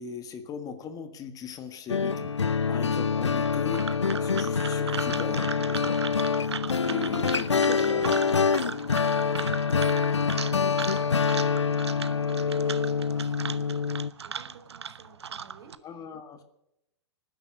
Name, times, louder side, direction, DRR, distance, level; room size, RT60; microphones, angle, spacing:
voice 1, 0.0-6.0 6.8-8.5 15.8-16.4, left 7 dB, 25° left, 9 dB, 1.6 m, -39 dB
sound 1, 1.9-14.1, left 5 dB, 85° left, 0.5 m, -26 dB
sound 2, 3.4-15.7, right 7 dB, 70° right, 1.0 m, -38 dB
voice 2, 9.2-15.7, right 6 dB, 50° right, 6 dB, 4.0 m, -53 dB
19.0 x 10.5 x 6.5 m, 0.85 s
figure-of-eight pair, 110°, 14 cm